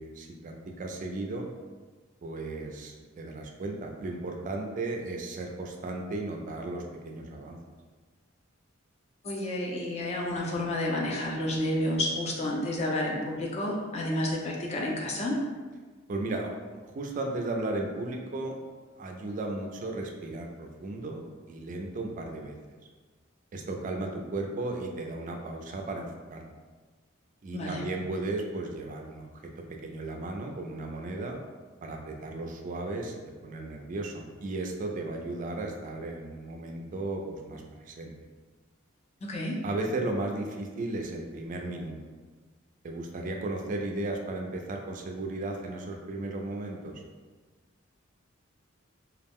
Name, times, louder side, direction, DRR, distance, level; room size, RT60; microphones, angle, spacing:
voice 1, 0.0-1.5 2.2-7.6 16.1-18.6 19.0-21.2 21.5-22.5 23.5-26.4 27.4-31.4 31.8-33.1 33.4-38.1 39.6-42.0 42.8-47.0, right 2 dB, 40° right, 2 dB, 0.3 m, -35 dB
voice 2, 9.2-15.4 27.5-27.8 39.2-39.6, left 1 dB, 35° left, -2 dB, 0.4 m, -30 dB
2.3 x 2.0 x 3.5 m, 1.4 s
head